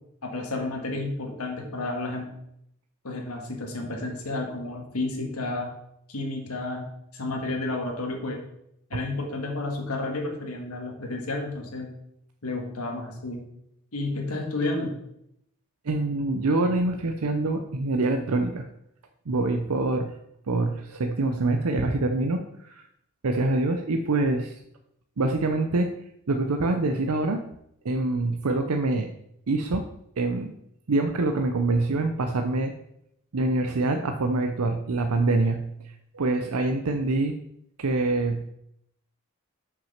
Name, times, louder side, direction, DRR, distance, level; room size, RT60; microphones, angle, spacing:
voice 1, 0.2-2.3 3.0-5.7 6.1-8.4 8.9-11.9 12.4-13.5 13.9-14.9, left 2 dB, 85° left, 2 dB, 1.8 m, -31 dB
voice 2, 15.8-18.7 19.3-20.1 20.5-22.9 23.2-24.6 25.2-25.9 26.3-27.4 27.8-29.1 29.5-29.9 30.2-30.5 30.9-32.7 33.3-37.4 37.8-38.5, right 2 dB, 85° right, 5 dB, 0.6 m, -25 dB
6.2 x 5.9 x 5.7 m, 0.77 s
head